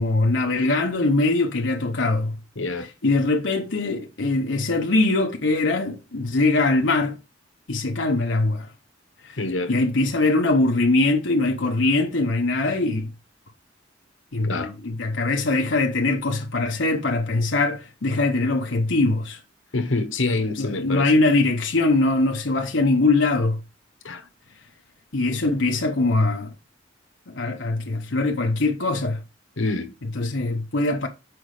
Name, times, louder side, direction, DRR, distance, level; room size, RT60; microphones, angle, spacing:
voice 1, 0.0-2.4 2.8-7.2 7.7-8.7 9.2-9.4 9.7-13.1 14.3-19.4 20.6-23.6 25.1-26.5 27.3-29.2 30.0-31.1, left 2 dB, 70° left, 0.9 m, -22 dB
voice 2, 2.6-2.9 9.4-9.7 14.4-14.7 19.7-21.1 24.0-24.3 29.6-29.9, left 2 dB, 90° left, 1.2 m, -26 dB
6.2 x 5.0 x 4.9 m
head